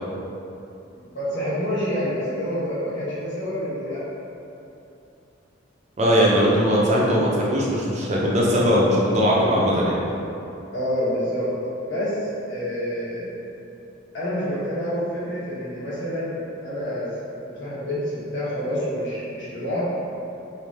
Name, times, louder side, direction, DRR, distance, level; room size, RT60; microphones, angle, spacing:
voice 1, 0.9-4.0 10.7-11.5 11.9-13.3 14.1-17.1 17.6-19.9, equal, 60° left, -10 dB, 1.2 m, -28 dB
voice 2, 6.0-10.0, equal, 35° right, -5 dB, 0.5 m, -19 dB
3.2 x 2.6 x 3.6 m, 2.8 s
head